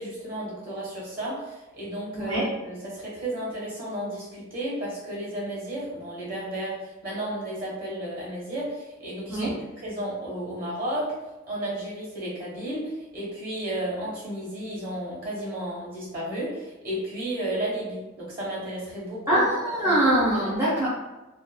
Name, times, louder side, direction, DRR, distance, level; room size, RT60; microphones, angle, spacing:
voice 1, 0.0-9.5 9.8-11.2 11.5-19.5 19.8-20.1 20.3-20.5, right 1 dB, 45° right, -6 dB, 1.1 m, -33 dB
voice 2, 19.3-20.9, right 1 dB, 15° right, -10 dB, 0.5 m, -23 dB
2.7 x 2.1 x 2.2 m, 1.1 s
head